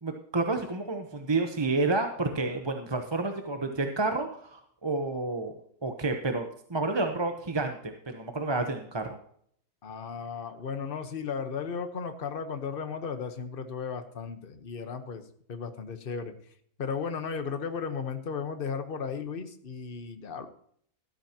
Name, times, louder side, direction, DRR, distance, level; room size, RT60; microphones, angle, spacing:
voice 1, 0.0-5.5 5.8-9.1, right 3 dB, 20° right, 5 dB, 0.8 m, -30 dB
voice 2, 9.8-15.2 15.5-16.3 16.8-20.5, left 6 dB, 40° left, 8 dB, 1.2 m, -35 dB
13.5 x 13.0 x 2.9 m, 0.63 s
omnidirectional pair, 1.6 m